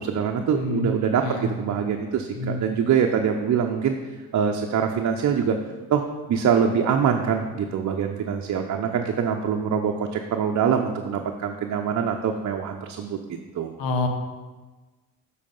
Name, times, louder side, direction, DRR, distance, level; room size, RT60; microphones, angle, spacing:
voice 1, 0.0-4.0 4.3-5.6 5.9-6.0 6.3-13.2 13.5-13.8, right 7 dB, 45° right, 2 dB, 0.7 m, -24 dB
voice 2, 0.5-0.9 1.2-1.5 2.3-2.6 13.8-14.1, left 2 dB, 85° left, 4 dB, 1.0 m, -27 dB
7.5 x 4.1 x 5.4 m, 1.2 s
hypercardioid pair, 60°, 42 cm